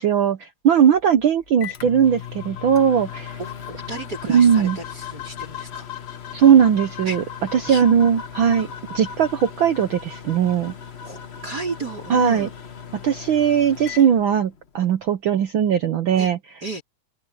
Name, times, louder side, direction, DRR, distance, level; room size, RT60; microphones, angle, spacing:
voice 1, 0.0-3.4 4.3-4.8 6.3-7.2 7.5-8.7 8.9-10.7 12.1-12.5 13.0-16.4, right 8 dB, 70° right, 1.2 m, -18 dB
Microwave oven, 0.9-14.9, left 8 dB, 75° left, 0.5 m, -39 dB
sound 1, 2.0-13.0, left 8 dB, 50° left, 1.3 m, -40 dB
voice 2, 3.4-5.9 7.1-7.2 7.7-7.8 8.6-8.7 11.0-12.5 16.2-16.3 16.6-16.8, right 3 dB, 30° right, 5.3 m, -33 dB
open air
omnidirectional pair, 3.3 m